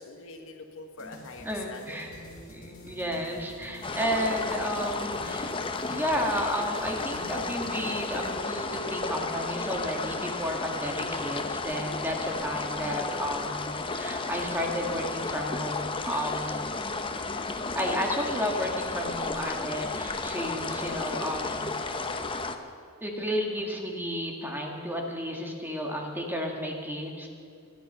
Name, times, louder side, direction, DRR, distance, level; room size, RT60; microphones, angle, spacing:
voice 1, 0.0-2.4 3.8-4.0, left 3 dB, 65° left, 4 dB, 1.6 m, -45 dB
sound 1, 1.0-8.3, left 1 dB, 45° left, 4.7 m, -46 dB
voice 2, 1.4-2.1 2.5-16.7 17.7-21.7 23.0-27.3, equal, 10° right, 1 dB, 1.9 m, -32 dB
sound 2, 3.8-22.6, left 3 dB, 25° left, 0.8 m, -33 dB
24.0 x 10.0 x 5.7 m, 2.4 s
head